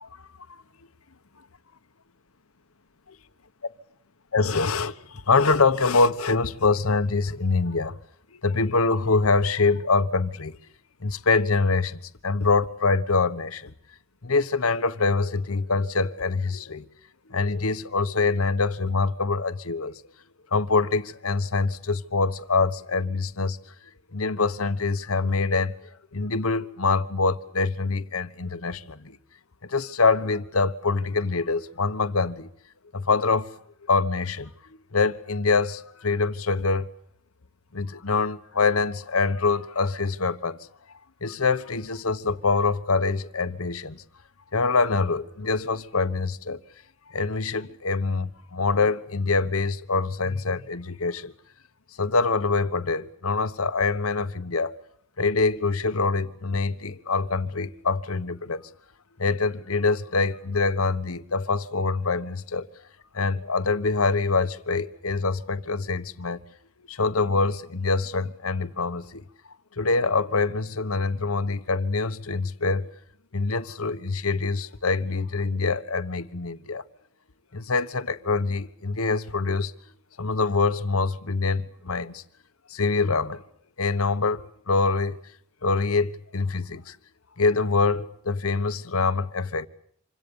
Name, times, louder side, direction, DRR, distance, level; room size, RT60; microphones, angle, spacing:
voice 1, 4.3-8.0 8.3-10.5 11.0-13.7 14.2-16.9 17.3-19.9 20.5-23.6 24.1-25.7 26.1-29.2 29.6-32.5 32.9-33.5 33.9-34.5 34.9-36.9 37.7-40.6 41.2-44.0 44.5-46.6 47.1-51.3 52.0-54.8 55.2-58.6 59.2-62.7 63.1-66.4 66.9-69.2 69.8-72.9 73.3-76.8 77.5-79.7 80.2-82.2 82.7-83.4 83.8-85.2 85.6-86.9 87.4-89.7, left 4 dB, 90° left, 1.3 m, -25 dB
27.5 x 25.5 x 7.1 m
head